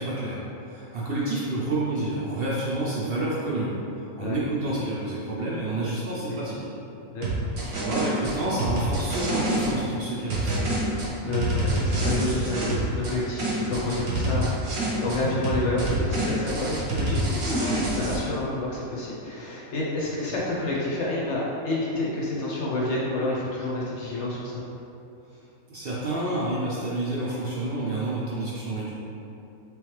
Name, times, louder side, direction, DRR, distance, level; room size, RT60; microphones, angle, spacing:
voice 1, 0.0-3.8 4.2-6.6 7.7-10.5 25.7-29.0, right 2 dB, 65° right, -6 dB, 0.6 m, -29 dB
voice 2, 7.1-7.5 11.2-24.6, left 2 dB, 65° left, -4 dB, 0.8 m, -29 dB
sound 1, 7.2-9.7 10.3-13.1 13.4-15.2 15.4-18.2, right 1 dB, 90° right, 1.4 m, -26 dB
3.3 x 3.0 x 3.1 m, 2.8 s
omnidirectional pair, 1.5 m